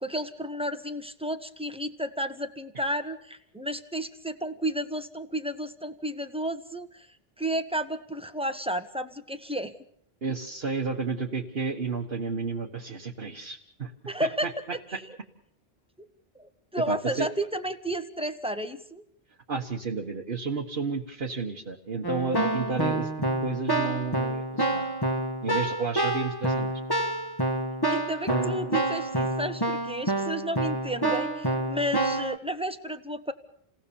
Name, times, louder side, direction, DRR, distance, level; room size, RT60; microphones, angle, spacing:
voice 1, 0.0-7.1 7.4-9.7 14.1-14.6 16.3-19.0 27.9-33.3, right 1 dB, 5° right, 9 dB, 1.3 m, -32 dB
voice 2, 10.2-13.9 14.2-14.5 16.9-17.3 19.5-23.1 23.4-24.8 25.4-26.7, right 4 dB, 70° right, -2 dB, 1.8 m, -31 dB
Keyboard (musical), 22.0-32.4, right 1 dB, 20° left, 1.7 m, -28 dB
29.0 x 18.0 x 7.1 m, 0.68 s
omnidirectional pair, 1.0 m